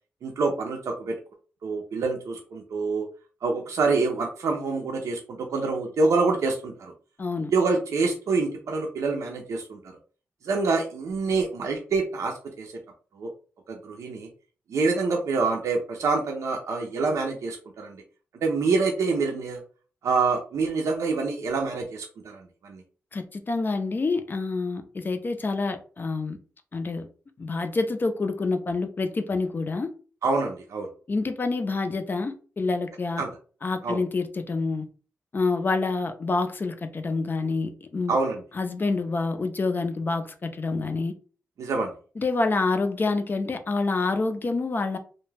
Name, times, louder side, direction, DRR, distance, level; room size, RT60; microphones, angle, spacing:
voice 1, 0.2-1.2 1.6-3.1 3.4-6.9 7.5-9.9 10.4-12.7 13.1-13.3 13.7-14.3 14.7-18.0 18.4-19.6 20.0-22.8 30.2-30.9 33.2-33.3 33.8-34.0 38.1-38.4 41.6-41.9, right 4 dB, 75° right, 2 dB, 0.5 m, -26 dB
voice 2, 7.2-7.5 23.1-26.4 26.7-27.1 27.4-29.9 31.1-33.2 33.6-34.9 35.3-38.2 38.6-41.1 42.2-45.0, left 3 dB, 40° left, 8 dB, 0.4 m, -27 dB
2.2 x 2.1 x 3.2 m, 0.39 s
cardioid pair, 65°, 5 cm